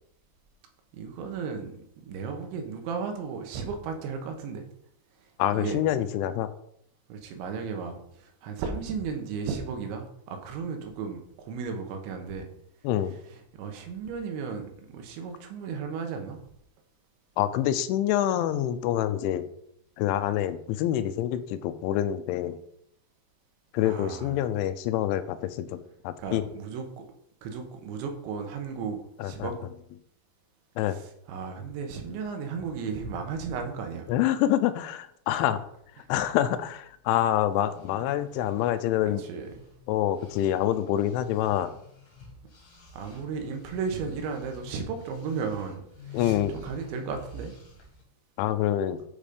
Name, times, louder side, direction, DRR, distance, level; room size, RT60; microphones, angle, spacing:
voice 1, 0.9-4.6 5.5-5.8 7.1-12.5 13.3-16.4 23.8-24.3 26.2-27.1 27.4-29.6 30.9-34.1 39.0-39.6 42.9-47.5, right 5 dB, 80° right, 4 dB, 3.4 m, -35 dB
voice 2, 5.4-6.5 12.8-13.2 17.4-19.5 20.0-22.6 23.7-26.4 29.2-29.5 30.8-31.0 34.1-35.6 36.1-39.2 39.9-41.7 46.1-46.5 48.4-49.0, left 12 dB, 85° left, 11 dB, 3.0 m, -26 dB
sound 1, 37.5-39.8 40.1-48.0, left 3 dB, 50° left, 2.1 m, -46 dB
9.0 x 5.3 x 5.0 m, 0.71 s
omnidirectional pair, 5.4 m